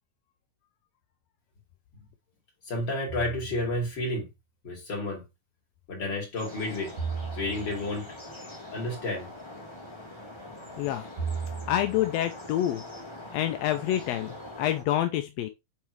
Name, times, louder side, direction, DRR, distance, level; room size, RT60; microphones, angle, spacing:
voice 1, 2.7-4.3 4.6-5.2 5.9-7.0 7.4-8.1 8.7-9.3, left 1 dB, 40° left, 3.5 m, -31 dB
sound 1, 3.1-3.9 7.0-8.0 11.2-12.1, right 5 dB, 55° right, 2.3 m, -36 dB
sound 2, 6.3-14.8, left 1 dB, 15° left, 1.1 m, -43 dB
voice 2, 10.8-11.1 11.7-12.8 13.3-15.5, left 12 dB, 80° left, 1.6 m, -27 dB
8.8 x 3.7 x 3.2 m
omnidirectional pair, 3.4 m